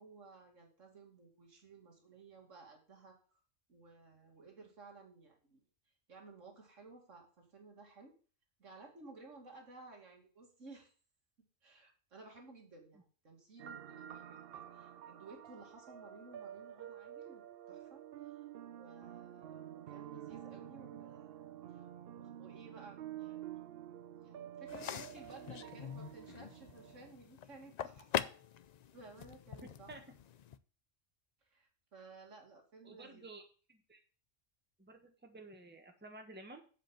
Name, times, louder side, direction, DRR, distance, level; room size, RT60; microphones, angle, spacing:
voice 1, 0.0-3.2 3.7-5.6 6.1-8.1 8.6-10.9 11.6-18.0 18.3-21.5 21.7-21.8 22.1-23.6 24.2-28.3 28.9-29.9 31.4-33.2, right 3 dB, 80° right, 1 dB, 2.5 m, -56 dB
sound 1, 13.6-27.1, right 11 dB, 60° right, 0.7 m, -49 dB
sound 2, 24.7-30.6, left 9 dB, 80° left, 0.3 m, -43 dB
voice 2, 32.8-33.4 33.7-34.0 34.8-36.6, right 2 dB, 10° right, 4 dB, 1.3 m, -52 dB
7.6 x 5.2 x 7.4 m, 0.38 s
omnidirectional pair, 1.3 m